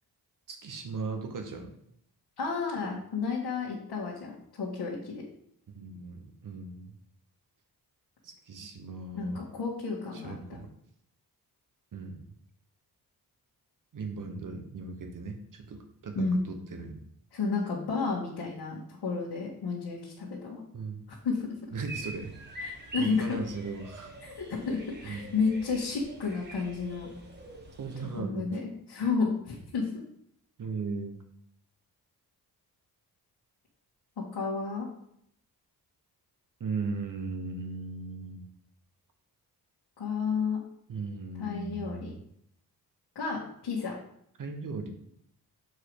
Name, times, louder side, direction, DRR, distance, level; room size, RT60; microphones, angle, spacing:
voice 1, 0.5-1.7 5.7-6.9 8.2-9.4 10.1-10.7 11.9-12.2 13.9-17.0 20.7-21.0 21.7-22.3 23.0-24.1 25.0-25.3 27.8-28.5 30.6-31.2 36.6-38.4 40.9-42.2 44.4-44.9, right 4 dB, 55° right, 5 dB, 1.1 m, -37 dB
voice 2, 2.4-5.3 9.2-10.6 16.2-16.4 17.3-20.6 21.2-21.5 22.6-23.4 24.2-27.1 28.2-29.9 34.3-34.9 40.0-40.6 41.4-42.1 43.2-43.9, left 4 dB, 85° left, -5 dB, 1.7 m, -31 dB
sound 1, 21.9-28.2, right 1 dB, 25° right, 1.1 m, -45 dB
6.8 x 4.8 x 4.7 m, 0.70 s
wide cardioid pair, 155°, 39 cm